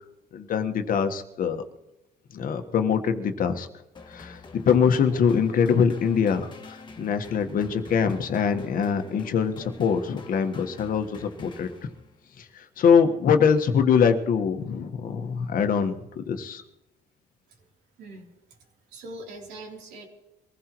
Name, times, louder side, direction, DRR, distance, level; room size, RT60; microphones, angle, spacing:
voice 1, 0.3-1.6 2.3-3.7 4.1-11.7 12.4-16.6, left 6 dB, 55° left, 7 dB, 1.4 m, -23 dB
sound 1, 3.9-12.3, left 3 dB, 25° left, 1.8 m, -47 dB
voice 2, 18.0-20.1, right 1 dB, 80° right, 0 dB, 3.4 m, -43 dB
24.0 x 15.5 x 3.1 m, 0.95 s
cardioid pair, 110°, 17 cm